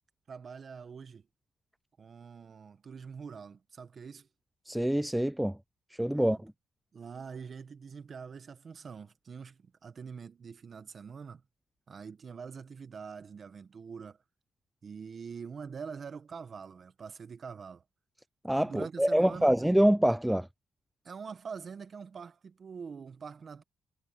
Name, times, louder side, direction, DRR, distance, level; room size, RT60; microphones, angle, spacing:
voice 1, 0.3-1.2 2.0-4.3 6.1-6.4 6.9-11.4 11.9-14.2 14.8-17.8 18.6-19.5 21.0-23.6, right 6 dB, 45° right, 1.6 m, -44 dB
voice 2, 4.7-5.6 6.0-6.5 18.4-20.5, equal, 5° right, 0.3 m, -26 dB
cardioid pair, 90°, 0 cm